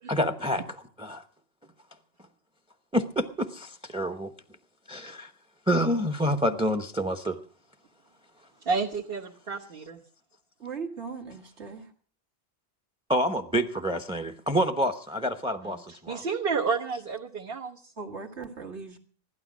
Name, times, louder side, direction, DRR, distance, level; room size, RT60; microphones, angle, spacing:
voice 1, 0.1-0.6 1.0-1.2 2.9-4.3 4.9-5.3 5.7-7.4 13.1-16.2, equal, 5° right, 0.8 m, -27 dB
voice 2, 8.6-10.0 15.6-17.9, right 5 dB, 55° right, 1.5 m, -31 dB
voice 3, 10.6-11.9 18.0-19.0, right 5 dB, 85° right, 2.3 m, -38 dB
16.0 x 12.0 x 6.1 m
omnidirectional pair, 1.1 m